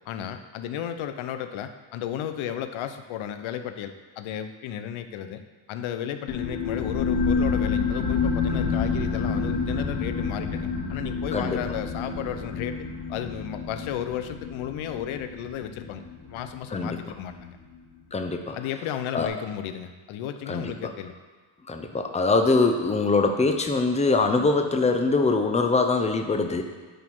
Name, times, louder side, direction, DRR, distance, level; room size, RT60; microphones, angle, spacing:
voice 1, 0.1-5.4 5.7-16.0 16.3-17.6 18.5-21.1, left 9 dB, 80° left, 9 dB, 0.7 m, -34 dB
sound 1, 6.3-17.4, left 5 dB, 50° left, 1.2 m, -28 dB
voice 2, 18.1-18.6 19.1-19.3 20.5-20.7 21.7-26.6, left 3 dB, 15° left, 5 dB, 0.7 m, -23 dB
9.2 x 4.4 x 4.5 m, 1.4 s
cardioid pair, 90°, 48 cm